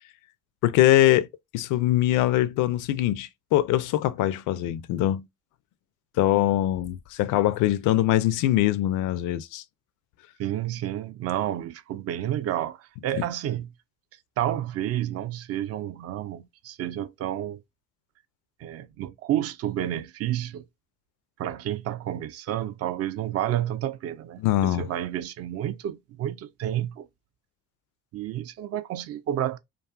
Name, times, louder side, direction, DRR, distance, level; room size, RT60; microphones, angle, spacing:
voice 1, 0.6-1.3 1.5-5.2 6.2-9.6 13.2-13.3 24.4-24.9, left 14 dB, 65° left, 0.5 m, -22 dB
voice 2, 10.4-13.7 14.4-17.6 18.6-20.6 21.4-27.1 28.1-29.6, right 12 dB, 45° right, 0.4 m, -30 dB
2.6 x 2.3 x 2.3 m
hypercardioid pair, 65°, 34 cm